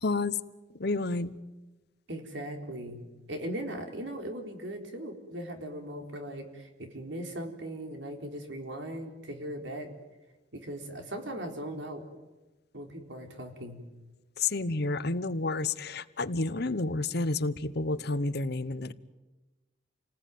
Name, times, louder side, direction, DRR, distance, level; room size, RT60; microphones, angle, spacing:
voice 1, 0.0-0.3 0.8-1.3 14.4-18.9, left 3 dB, 60° left, 15 dB, 1.0 m, -30 dB
voice 2, 2.1-9.9 10.5-12.0 12.7-13.8, right 1 dB, 85° right, 4 dB, 4.0 m, -39 dB
28.5 x 19.5 x 9.3 m, 1.1 s
head